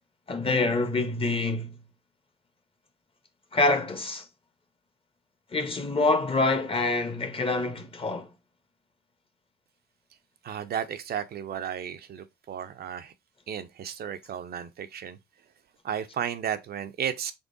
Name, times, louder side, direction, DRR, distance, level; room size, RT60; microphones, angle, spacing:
voice 1, 0.3-1.7 3.5-4.2 5.5-8.3, left 3 dB, 25° left, 0.8 m, -26 dB
voice 2, 10.4-13.1 13.5-15.2 15.8-17.3, right 8 dB, 50° right, 0.4 m, -33 dB
3.6 x 3.3 x 2.5 m
cardioid pair, 90°, 20 cm